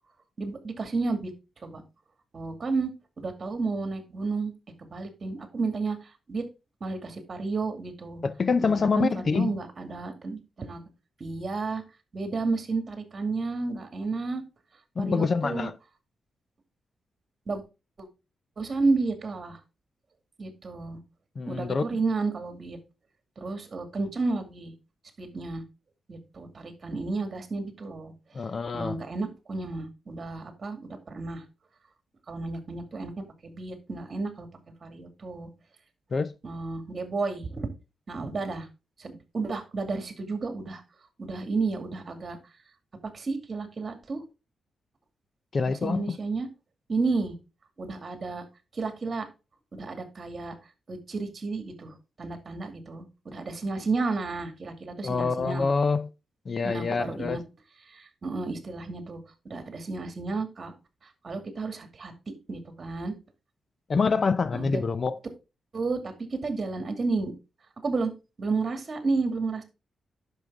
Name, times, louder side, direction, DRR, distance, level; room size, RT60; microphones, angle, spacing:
voice 1, 0.4-1.3 1.6-1.8 2.3-2.9 3.2-4.5 4.8-6.0 6.3-6.4 6.8-8.2 8.6-10.8 11.2-11.8 12.1-14.4 15.0-15.7 17.5-17.6 18.0-18.1 18.6-19.6 20.4-21.0 21.5-22.8 23.4-24.7 25.2-25.6 26.1-28.1 28.7-31.4 32.3-34.5 34.8-35.5 36.4-37.7 38.1-38.7 39.0-40.8 41.2-42.4 43.1-44.2 45.7-46.5 46.9-47.4 47.8-48.4 48.7-49.3 49.7-50.6 50.9-55.7 56.6-57.4 57.9-59.2 59.4-60.7 61.2-62.1 62.5-63.1 64.5-64.8 65.7-66.1 66.4-67.3 67.8-68.1 68.4-69.6, right 3 dB, 40° right, 2.3 m, -31 dB
voice 2, 8.2-9.6 15.0-15.7 21.4-21.9 28.3-29.0 36.1-36.3 45.5-46.2 55.0-56.1 56.5-57.4 63.9-65.2, left 4 dB, 40° left, 0.5 m, -26 dB
10.5 x 6.3 x 3.6 m
wide cardioid pair, 120°, 0 cm